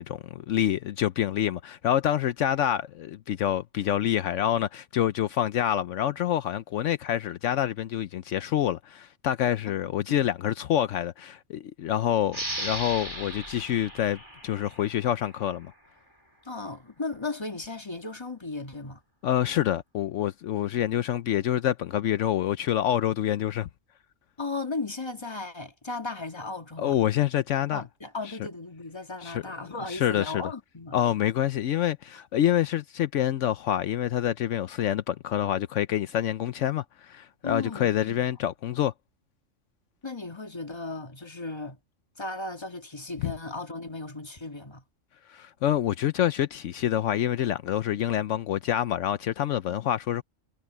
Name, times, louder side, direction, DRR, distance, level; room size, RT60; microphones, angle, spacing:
voice 1, 0.0-15.7 19.2-23.7 26.8-27.8 29.2-29.4 29.9-30.5 30.9-38.9 43.2-43.3 45.3-50.2, left 11 dB, 75° left, 1.0 m, -27 dB
sound 1, 12.3-15.6, right 1 dB, 20° right, 4.8 m, -37 dB
voice 2, 16.4-19.0 24.4-27.0 27.7-31.0 32.1-32.2 37.4-38.3 40.0-41.8 42.2-44.8, left 3 dB, 20° left, 1.8 m, -36 dB
omnidirectional pair, 1.3 m